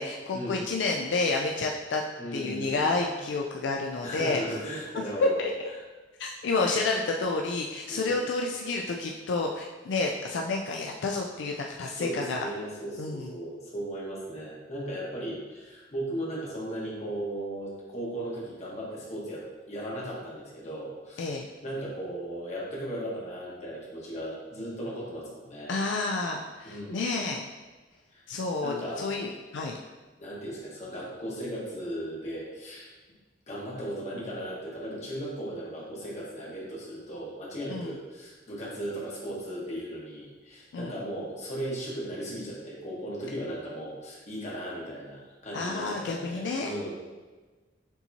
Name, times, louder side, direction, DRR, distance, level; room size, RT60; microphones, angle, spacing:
voice 1, 0.0-2.0 2.3-4.4 5.2-5.5 6.2-12.4 13.0-13.4 21.2-21.5 25.7-27.4 28.3-29.8 37.7-37.9 40.7-40.9 45.5-46.7, left 3 dB, 75° left, 1 dB, 0.4 m, -29 dB
voice 2, 2.2-3.1 4.0-5.4 7.9-8.2 11.9-25.7 26.6-27.0 28.1-28.2 28.6-29.1 30.2-32.9 33.5-46.9, right 1 dB, 40° left, -5 dB, 1.3 m, -37 dB
6.7 x 2.9 x 2.8 m, 1.3 s
head